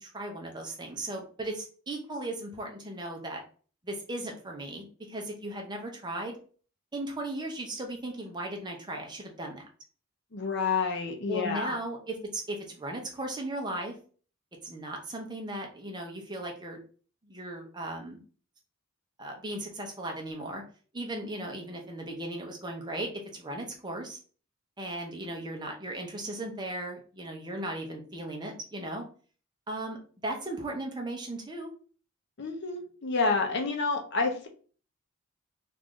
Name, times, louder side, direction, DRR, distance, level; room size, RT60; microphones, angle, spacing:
voice 1, 0.0-3.4 3.8-6.4 6.9-9.7 11.3-14.0 14.6-16.8 17.2-18.2 19.2-20.6 20.9-24.2 24.8-29.0 29.7-30.0 30.2-31.7, right 1 dB, 20° right, 1 dB, 0.6 m, -37 dB
voice 2, 10.3-11.7 32.4-34.5, left 4 dB, 50° left, 3 dB, 0.6 m, -29 dB
3.1 x 2.5 x 3.6 m, 0.41 s
head